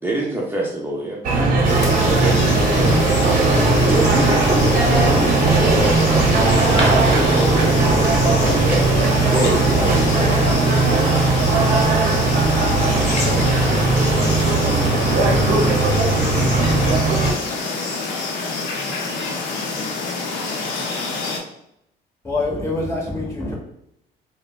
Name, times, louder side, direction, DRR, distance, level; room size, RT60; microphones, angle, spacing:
voice 1, 0.0-1.2 2.0-3.0 3.8-6.0 6.6-7.6 8.2-10.6, right 2 dB, 15° right, 0.5 m, -26 dB
sound 1, 1.2-17.3, right 3 dB, 55° right, 0.7 m, -17 dB
sound 2, 1.7-21.4, left 3 dB, 85° left, 0.6 m, -27 dB
voice 2, 11.5-16.5, left 1 dB, 40° left, 0.6 m, -32 dB
voice 3, 22.2-23.6, left 2 dB, 15° left, 1.0 m, -25 dB
3.3 x 2.0 x 2.3 m
cardioid pair, 110°, 17 cm